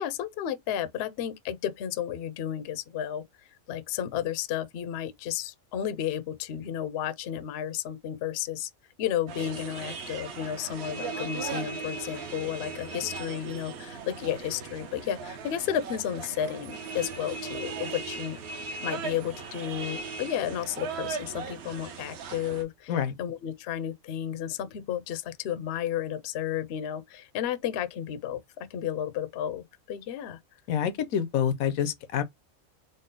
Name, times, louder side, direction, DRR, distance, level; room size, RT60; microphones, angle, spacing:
voice 1, 0.0-3.2 3.7-8.7 9.0-18.4 18.8-22.9 23.2-30.4, left 10 dB, 65° left, 0.7 m, -32 dB
sound 1, 9.3-22.6, right 4 dB, 60° right, 0.8 m, -38 dB
voice 2, 30.7-32.2, left 8 dB, 85° left, 1.0 m, -27 dB
3.9 x 2.0 x 3.6 m
omnidirectional pair, 1.5 m